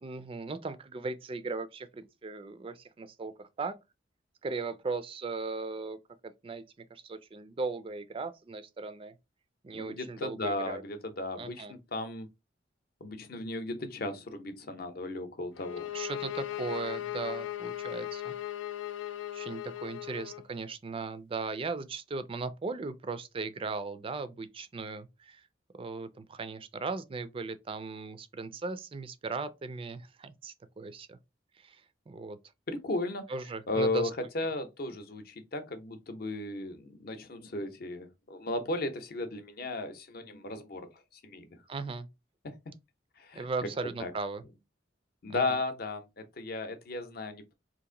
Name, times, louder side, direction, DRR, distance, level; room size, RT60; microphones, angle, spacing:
voice 1, 0.0-3.7 4.4-6.0 6.2-6.6 6.9-9.1 9.6-10.8 11.4-11.7 15.9-18.3 19.3-25.4 25.8-31.2 31.6-32.4 33.3-34.1 41.7-42.1 43.3-44.4 45.2-45.6, right 4 dB, 30° right, 0.4 m, -38 dB
voice 2, 9.7-12.3 13.0-15.9 32.7-33.2 33.7-34.1 34.3-41.6 42.4-42.7 43.2-43.4 44.0-44.1 45.2-46.0 46.4-47.5, left 2 dB, 55° left, 0.6 m, -35 dB
sound 1, 15.5-20.4, left 13 dB, 90° left, 0.3 m, -38 dB
2.9 x 2.5 x 3.7 m
head